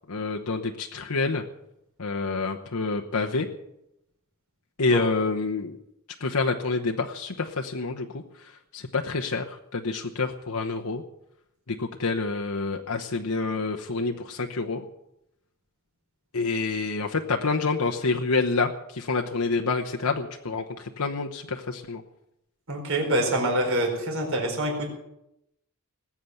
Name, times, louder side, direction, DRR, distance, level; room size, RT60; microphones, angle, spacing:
voice 1, 0.1-1.4 2.0-3.5 4.8-5.8 6.2-11.0 11.7-14.9 16.3-22.0, left 3 dB, 80° left, 3 dB, 1.0 m, -28 dB
voice 2, 22.7-24.9, right 1 dB, 65° right, 2 dB, 4.6 m, -25 dB
20.0 x 8.6 x 7.9 m, 0.82 s
head